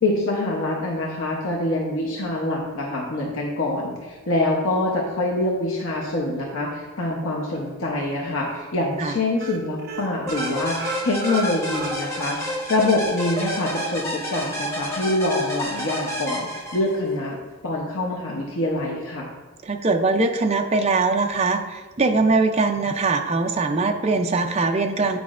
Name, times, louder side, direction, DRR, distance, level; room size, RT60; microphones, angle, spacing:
voice 1, 0.0-17.4 17.6-19.3, left 2 dB, 70° left, -2 dB, 0.8 m, -25 dB
sound 1, 7.5-8.1 8.5-8.6 8.9-9.1 9.4-12.4 12.7-12.8 13.2-13.3, right 5 dB, 45° right, 1.0 m, -35 dB
sound 2, 10.3-17.1, equal, 15° left, 0.9 m, -30 dB
voice 2, 19.6-25.2, right 3 dB, 30° right, 5 dB, 0.4 m, -21 dB
9.5 x 5.0 x 2.4 m, 1.3 s
head